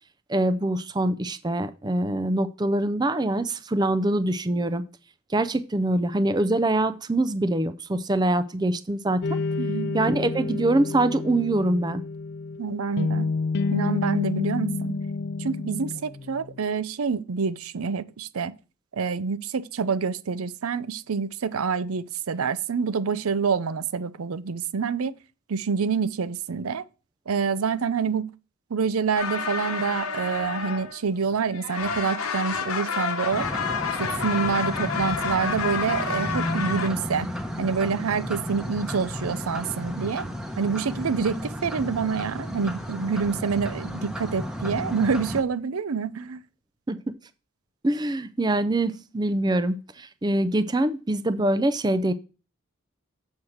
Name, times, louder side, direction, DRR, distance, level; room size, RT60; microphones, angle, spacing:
voice 1, 0.3-4.8 5.3-9.2 9.9-12.0 46.9-47.0 47.8-52.1, right 1 dB, 20° right, 0.4 m, -24 dB
sound 1, 9.2-16.6, left 3 dB, 50° left, 0.4 m, -29 dB
voice 2, 9.6-10.0 12.6-13.3 13.7-14.9 15.4-18.5 18.9-25.2 25.5-26.8 27.3-28.3 28.7-33.5 34.0-37.3 37.6-40.2 40.6-46.4, right 5 dB, 90° right, 0.6 m, -27 dB
sound 2, 29.2-31.3 31.5-36.9, left 6 dB, 85° left, 1.0 m, -29 dB
sound 3, 33.3-45.4, equal, 5° right, 0.9 m, -33 dB
7.3 x 4.6 x 6.4 m
head